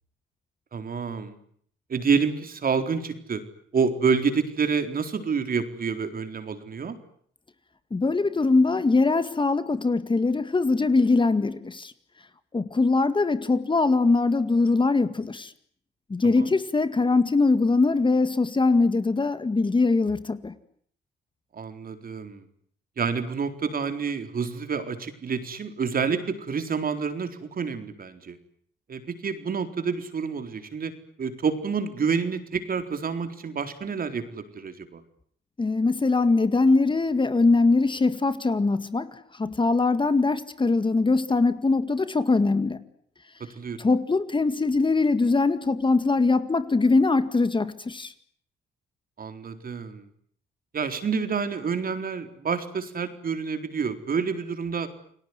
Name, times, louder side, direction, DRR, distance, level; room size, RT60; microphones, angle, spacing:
voice 1, 0.7-1.4 1.9-3.4 3.7-7.0 16.2-16.5 21.5-22.4 23.0-28.4 28.9-30.9 31.2-35.0 43.6-43.8 49.2-50.1 50.7-54.9, right 5 dB, 45° right, 4.1 m, -28 dB
voice 2, 7.9-11.9 12.5-15.5 16.1-20.5 35.6-42.8 43.8-48.1, left 3 dB, 25° left, 2.0 m, -22 dB
29.5 x 19.5 x 9.6 m
cardioid pair, 90°, 20 cm